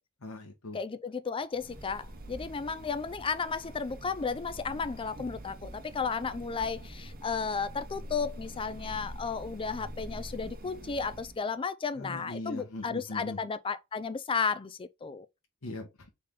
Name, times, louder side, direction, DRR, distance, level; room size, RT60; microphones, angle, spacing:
voice 1, 0.2-0.8 11.9-13.4 15.6-16.1, left 2 dB, 85° left, 1.1 m, -40 dB
voice 2, 0.7-15.3, left 5 dB, 25° left, 0.4 m, -33 dB
sound 1, 1.5-11.4, equal, 45° right, 0.8 m, -45 dB
4.1 x 3.5 x 3.6 m
head